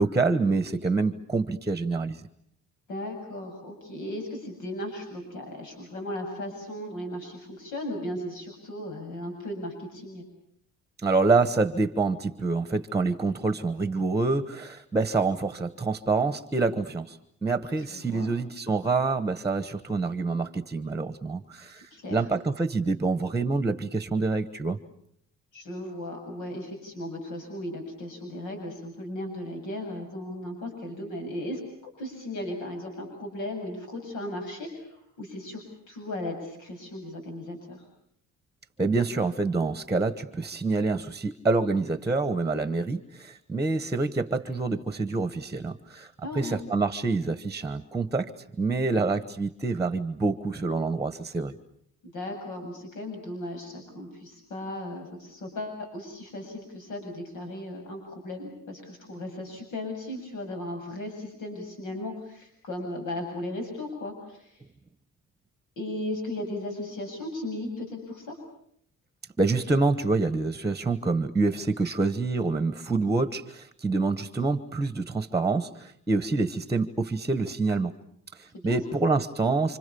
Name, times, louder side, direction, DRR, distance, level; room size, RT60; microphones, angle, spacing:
voice 1, 0.0-2.2 11.0-24.8 38.8-48.3 48.6-51.5 69.4-77.9 78.3-79.8, right 3 dB, 10° right, 11 dB, 1.3 m, -27 dB
voice 2, 2.9-10.2 17.8-18.3 21.9-22.2 25.5-31.6 32.0-37.8 46.2-46.6 52.0-64.6 65.8-68.4 78.5-78.8, left 1 dB, 80° left, 4 dB, 7.7 m, -36 dB
29.5 x 26.0 x 7.0 m, 0.69 s
cardioid pair, 155°, 30 cm